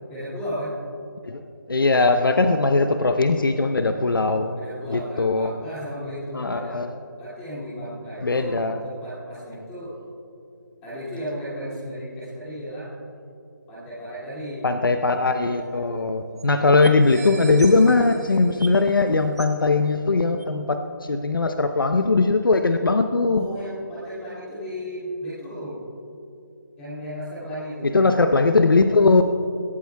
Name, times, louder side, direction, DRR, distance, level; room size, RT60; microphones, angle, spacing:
voice 1, 0.1-0.7 4.5-6.8 7.2-9.9 10.8-12.9 13.7-14.7 16.3-16.6 23.3-25.8 26.8-28.2, equal, 5° left, -10 dB, 2.4 m, -34 dB
voice 2, 1.7-4.6 4.9-5.5 6.3-6.9 8.2-8.8 14.6-23.5 27.8-29.2, left 3 dB, 90° left, 8 dB, 0.8 m, -20 dB
sound 1, 15.5-15.6 15.8-15.9 16.4-16.5 16.8-19.0 19.4-19.6 20.4-20.5, right 4 dB, 50° right, 1.5 m, -40 dB
22.0 x 16.0 x 2.3 m, 2.6 s
figure-of-eight pair, 175°, 11 cm